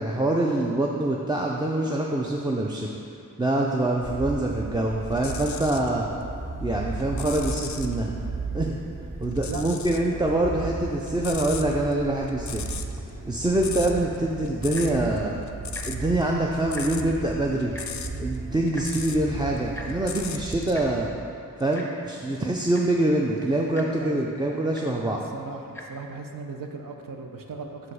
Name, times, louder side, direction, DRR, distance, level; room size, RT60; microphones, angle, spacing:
voice 1, 0.0-3.0 3.4-6.1 6.6-8.2 8.5-8.8 9.2-12.8 13.3-15.4 15.8-17.8 18.2-21.1 21.6-25.2, right 1 dB, 15° right, -2 dB, 0.4 m, -25 dB
sound 1, 4.0-21.1, right 3 dB, 40° right, 0.9 m, -35 dB
sound 2, 5.1-5.9 6.4-7.9 9.3-10.1 10.4-19.3 19.6-20.8 21.6-21.8, left 8 dB, 60° left, 0.4 m, -38 dB
voice 2, 9.4-9.9 24.0-24.2 25.0-27.9, right 3 dB, 75° right, 3 dB, 0.7 m, -37 dB
Tick-tock, 14.6-15.0 15.7-15.9 16.2-16.3 16.6-17.1 17.7-17.9 18.7-18.9 19.7-19.9 20.7-20.9 21.7-21.9 22.5-22.6 22.7-23.0 23.7-23.9 24.7-24.9 25.7-25.9 26.6-26.7, left 1 dB, 5° left, 0.8 m, -40 dB
6.3 x 4.9 x 4.8 m, 2.5 s
wide cardioid pair, 80°, 34 cm